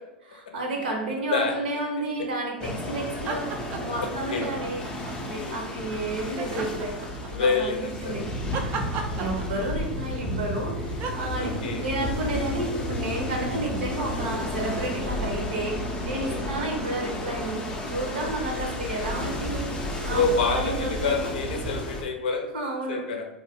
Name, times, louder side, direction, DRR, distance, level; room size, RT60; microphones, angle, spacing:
voice 1, 0.3-4.9 5.2-6.9 7.3-8.3 9.1-11.5 11.8-17.6 17.9-21.3 22.5-23.0, right 2 dB, 65° right, 0 dB, 0.8 m, -31 dB
sound 1, 2.6-22.0, left 1 dB, 15° left, 0.5 m, -32 dB
sound 2, 3.1-4.0 4.4-5.4 6.4-7.5 8.5-9.9 11.0-11.3, right 5 dB, 35° right, 0.4 m, -34 dB
voice 2, 4.3-4.6 5.3-5.6 7.4-8.2 9.1-9.3 11.4-11.8 16.2-16.4 18.4-18.7 20.1-22.5 22.9-23.3, left 4 dB, 60° left, 3 dB, 0.5 m, -28 dB
2.5 x 2.1 x 3.5 m, 0.98 s
figure-of-eight pair, 90°, 6 cm